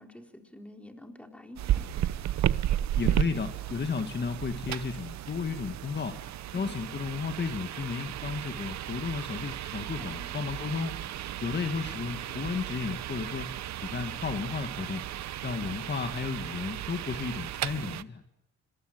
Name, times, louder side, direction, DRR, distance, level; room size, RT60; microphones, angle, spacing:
voice 1, 0.0-1.9 6.5-6.7 10.0-10.4, left 1 dB, 5° left, 3 dB, 3.8 m, -48 dB
sound 1, 1.6-18.0, right 12 dB, 65° right, 0.9 m, -34 dB
voice 2, 2.9-6.2 6.5-11.0 11.4-15.0 15.4-18.2, left 5 dB, 35° left, 6 dB, 1.9 m, -33 dB
26.0 x 20.0 x 7.8 m, 0.86 s
cardioid pair, 90°, 30 cm